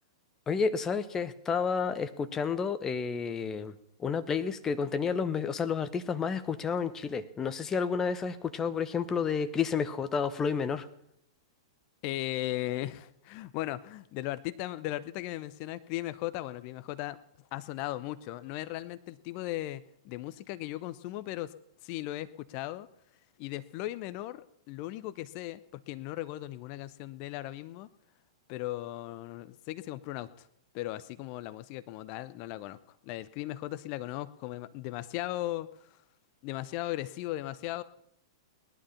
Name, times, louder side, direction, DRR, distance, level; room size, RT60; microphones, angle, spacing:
voice 1, 0.5-10.9, left 6 dB, 20° left, 11 dB, 1.0 m, -30 dB
voice 2, 12.0-17.2 17.5-21.5 21.8-22.9 23.4-24.4 24.7-27.9 28.5-30.5 30.7-32.8 33.0-35.9 36.4-37.8, left 16 dB, 40° left, 14 dB, 0.8 m, -37 dB
18.0 x 11.5 x 5.7 m, 0.75 s
figure-of-eight pair, 105°, 3 cm